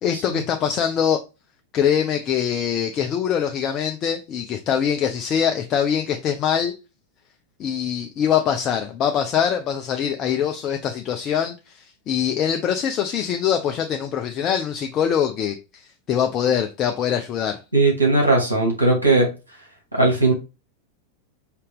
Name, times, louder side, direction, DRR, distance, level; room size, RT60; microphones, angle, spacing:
voice 1, 0.0-1.2 1.7-6.7 7.6-15.6 16.1-17.6, left 8 dB, 30° left, 0.5 m, -23 dB
voice 2, 17.7-19.3 19.9-20.3, right 2 dB, 80° right, 1.8 m, -18 dB
5.0 x 2.7 x 3.5 m
figure-of-eight pair, 90°, 0 cm